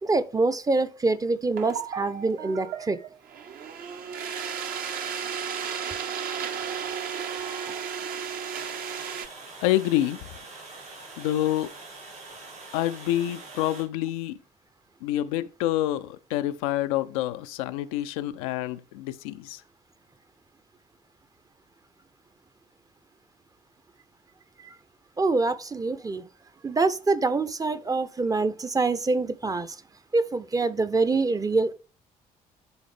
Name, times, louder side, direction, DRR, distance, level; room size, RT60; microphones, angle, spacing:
voice 1, 0.0-3.0 24.6-24.7 25.2-26.2 26.6-29.8 30.1-31.7, right 3 dB, 20° right, 0.6 m, -25 dB
sound 1, 1.6-9.3, right 7 dB, 50° right, 0.8 m, -34 dB
Water, 8.5-13.8, right 3 dB, 75° right, 3.0 m, -44 dB
voice 2, 9.6-10.2 11.2-11.7 12.7-14.4 15.0-19.6, left 14 dB, 65° left, 0.4 m, -27 dB
11.0 x 3.8 x 3.3 m
figure-of-eight pair, 45°, 19 cm